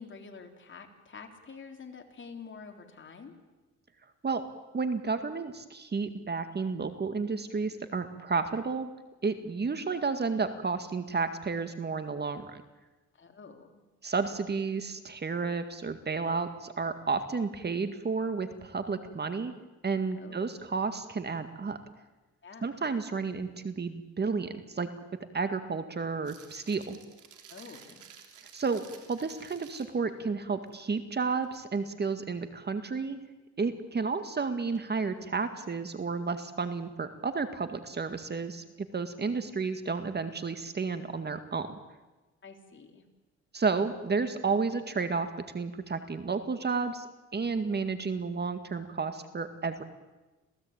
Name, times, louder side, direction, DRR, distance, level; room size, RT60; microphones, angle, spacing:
voice 1, 0.0-3.4 13.1-13.8 20.2-20.4 22.4-22.8 27.5-28.0 42.4-43.1, left 5 dB, 40° left, 4 dB, 3.7 m, -48 dB
voice 2, 4.7-8.9 9.2-12.6 14.0-19.5 19.8-21.8 22.6-24.9 25.3-27.0 28.5-28.8 29.1-33.2 33.6-38.6 38.9-41.7 43.5-45.3 45.5-47.1 47.3-49.8, right 4 dB, 35° right, 9 dB, 2.0 m, -31 dB
sound 1, 26.2-30.1 30.7-30.9 31.3-31.8 34.7-34.8 37.8-38.1, right 8 dB, 80° right, 3.8 m, -53 dB
27.5 x 17.0 x 9.0 m, 1.1 s
cardioid pair, 90°, 30 cm